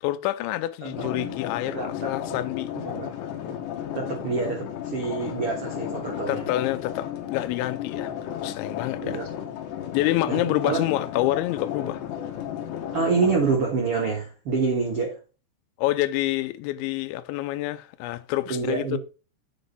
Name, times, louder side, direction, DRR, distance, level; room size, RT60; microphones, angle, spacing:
voice 1, 0.0-2.7 6.3-9.2 9.9-12.0 15.8-19.0, left 15 dB, 90° left, 3.0 m, -27 dB
voice 2, 0.8-1.4 1.6-2.4 2.7-3.1 3.9-6.5 9.0-9.3 10.3-10.8 12.9-15.2 18.5-19.0, right 4 dB, 80° right, 1.2 m, -27 dB
sound 1, 0.9-13.6, left 10 dB, 75° left, 3.2 m, -34 dB
9.9 x 4.2 x 5.3 m
omnidirectional pair, 5.2 m